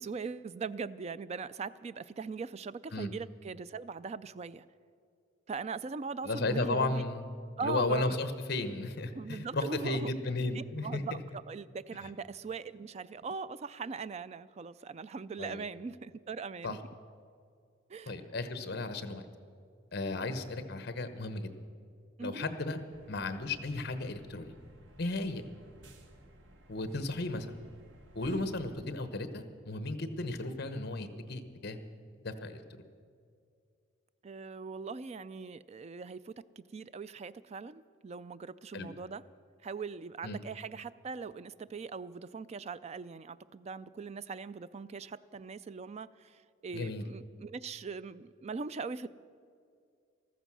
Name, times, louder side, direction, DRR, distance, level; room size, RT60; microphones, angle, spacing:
voice 1, 0.0-4.6 5.5-7.0 7.6-8.2 9.1-10.1 10.5-16.8 17.9-18.2 22.2-22.5 34.2-39.2 39.6-49.1, right 5 dB, 35° right, 16 dB, 0.3 m, -41 dB
voice 2, 6.2-7.3 7.6-11.0 15.4-15.6 16.6-16.8 18.1-19.2 19.9-21.5 22.2-22.8 23.1-24.5 25.0-25.5 26.7-27.6 28.1-31.8 32.2-32.8 38.7-38.9 40.2-40.4 46.7-47.0, left 2 dB, 55° left, 10 dB, 1.0 m, -34 dB
sound 1, 22.9-28.8, right 1 dB, 85° right, 1.4 m, -57 dB
14.5 x 14.0 x 6.2 m, 2.3 s
head